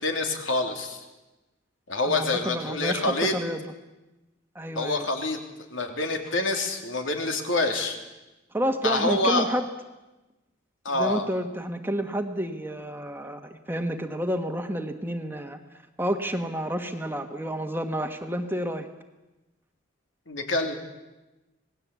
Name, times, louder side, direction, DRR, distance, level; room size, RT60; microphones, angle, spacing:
voice 1, 0.0-1.0 1.9-3.3 4.7-5.4 5.7-8.0 8.8-9.4 10.8-11.2 20.3-20.7, left 2 dB, 75° left, 4 dB, 3.3 m, -26 dB
voice 2, 2.0-3.6 4.5-5.1 8.5-9.7 10.9-15.6 16.0-18.9, right 1 dB, 10° right, 6 dB, 1.4 m, -30 dB
27.0 x 19.0 x 8.4 m, 1.1 s
head